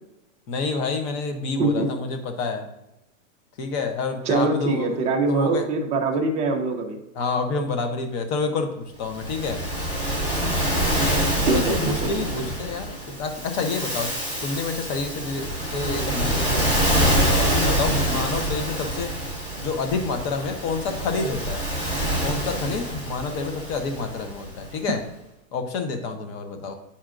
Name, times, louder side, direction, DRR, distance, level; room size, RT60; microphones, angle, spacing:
voice 1, 0.5-2.7 3.6-5.0 5.3-5.7 7.1-9.6 11.4-19.1 19.6-21.7 22.2-25.0 25.5-26.7, left 4 dB, 35° left, 6 dB, 0.8 m, -28 dB
voice 2, 4.3-7.0 11.4-12.1, right 3 dB, 15° right, 2 dB, 0.5 m, -23 dB
Waves surf, 9.1-24.6, right 1 dB, 10° left, 1.5 m, -26 dB
8.9 x 4.3 x 2.5 m, 0.86 s
hypercardioid pair, 145°, 41 cm